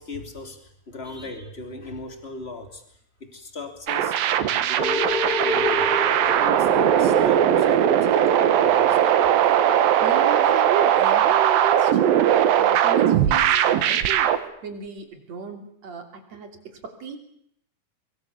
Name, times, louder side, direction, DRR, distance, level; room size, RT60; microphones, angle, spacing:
voice 1, 0.0-2.8 3.2-5.9 6.2-9.2, left 2 dB, 20° left, 6 dB, 2.9 m, -39 dB
sound 1, 3.9-14.4, right 11 dB, 85° right, 3.1 m, -19 dB
sound 2, 4.8-13.7 14.3-14.4, left 1 dB, 15° right, 1.6 m, -31 dB
voice 2, 10.0-14.3 14.6-17.2, right 6 dB, 50° right, 5 dB, 4.0 m, -34 dB
25.0 x 23.5 x 7.0 m, 0.72 s
omnidirectional pair, 4.1 m